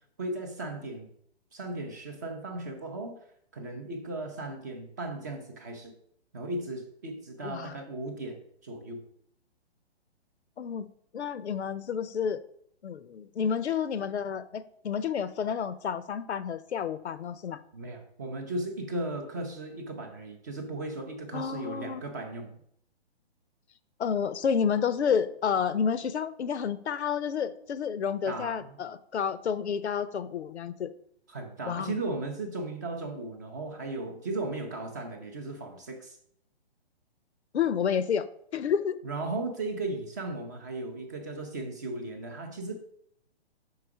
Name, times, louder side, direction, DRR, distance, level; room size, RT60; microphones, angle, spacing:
voice 1, 0.2-1.1 1.5-3.2 3.5-5.9 6.3-9.0 17.7-22.6 28.3-28.8 31.3-36.2 39.0-42.8, right 2 dB, 20° right, 4 dB, 0.4 m, -36 dB
voice 2, 7.4-7.8 10.6-10.9 11.1-12.4 12.8-17.6 21.3-22.0 24.0-30.9 31.7-32.0 37.5-39.0, left 7 dB, 90° left, 15 dB, 0.6 m, -30 dB
5.9 x 4.8 x 4.7 m, 0.68 s
hypercardioid pair, 150°, 32 cm